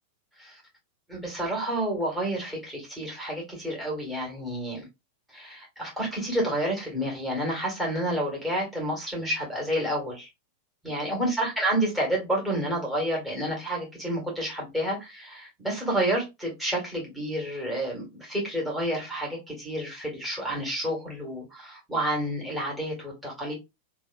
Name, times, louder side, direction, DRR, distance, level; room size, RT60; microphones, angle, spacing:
voice 1, 1.1-4.9 5.3-10.3 10.8-23.6, right 1 dB, 5° right, 1.8 m, -29 dB
3.2 x 2.6 x 2.3 m
figure-of-eight pair, 90°, 0 cm